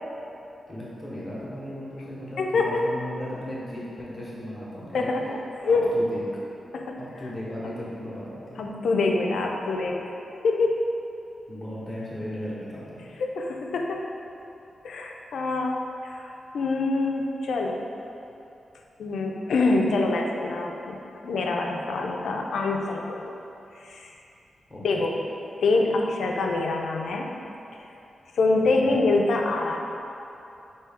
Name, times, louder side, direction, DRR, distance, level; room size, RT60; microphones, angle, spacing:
voice 1, 0.7-5.2 5.7-6.2 7.0-8.6 11.5-13.0 24.7-25.0 28.8-29.0, equal, 15° left, -8 dB, 0.9 m, -36 dB
voice 2, 2.4-2.9 4.9-5.9 6.7-7.0 8.6-10.0 10.4-10.8 13.2-14.0 14.8-17.8 19.0-21.0 21.2-23.4 23.8-24.1 24.8-25.2 25.6-27.3 28.3-29.8, left 3 dB, 80° left, 1 dB, 0.4 m, -25 dB
4.4 x 2.7 x 3.5 m, 2.9 s
wide cardioid pair, 140°, 0 cm